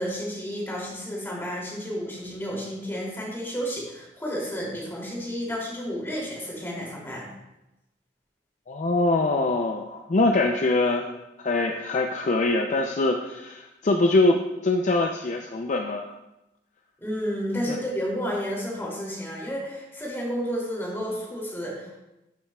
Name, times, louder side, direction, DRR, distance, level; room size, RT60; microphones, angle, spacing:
voice 1, 0.0-7.3 17.0-22.0, equal, 15° left, -4 dB, 2.7 m, -31 dB
voice 2, 8.7-16.2 17.7-17.8, left 2 dB, 45° left, 3 dB, 0.5 m, -24 dB
12.5 x 7.3 x 2.3 m, 0.93 s
head